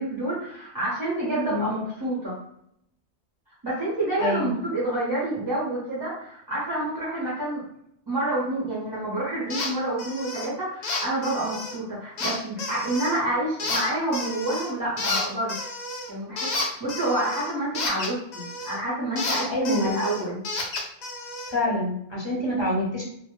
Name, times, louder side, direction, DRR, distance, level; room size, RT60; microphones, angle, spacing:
voice 1, 0.0-2.3 3.6-7.6 8.1-15.6 16.1-20.4, right 1 dB, 30° right, -8 dB, 0.4 m, -28 dB
voice 2, 4.2-4.5 19.5-20.0 21.5-23.0, left 1 dB, 30° left, -6 dB, 0.6 m, -26 dB
sound 1, 9.5-9.7 10.0-10.5 10.8-11.8 12.2-13.2 13.6-14.7 15.0-18.8 19.2-21.5, left 2 dB, 75° left, 0.4 m, -31 dB
2.1 x 2.0 x 2.9 m, 0.71 s
omnidirectional pair, 1.3 m